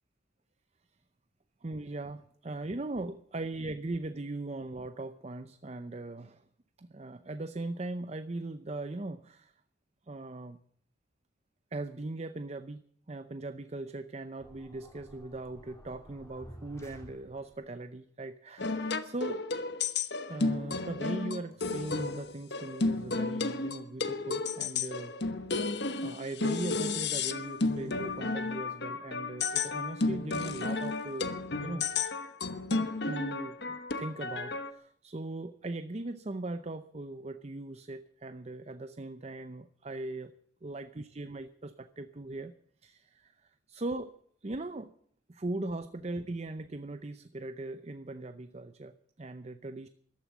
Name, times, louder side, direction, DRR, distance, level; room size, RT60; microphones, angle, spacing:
voice 1, 1.6-6.4 6.8-9.5 10.0-10.6 11.7-12.8 13.1-19.4 20.3-25.1 25.6-25.7 26.0-31.3 31.6-32.2 32.8-40.3 40.6-42.5 42.8-44.9 45.3-49.9, right 2 dB, 35° right, 11 dB, 0.6 m, -39 dB
sound 1, 14.4-17.7, equal, 15° left, 2.7 m, -52 dB
sound 2, 18.6-34.7, left 3 dB, 60° left, 1.1 m, -32 dB
14.0 x 12.5 x 7.3 m, 0.64 s
head